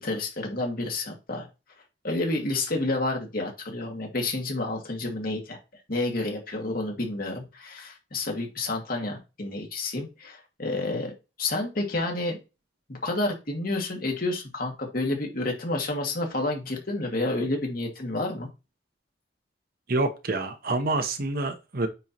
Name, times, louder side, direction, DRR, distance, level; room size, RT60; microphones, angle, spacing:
voice 1, 0.0-1.5 2.0-5.6 5.9-11.1 11.4-12.4 12.9-18.5, left 2 dB, 50° left, 2.1 m, -29 dB
voice 2, 19.9-21.9, right 2 dB, 55° right, 0.9 m, -27 dB
9.1 x 4.4 x 3.0 m
head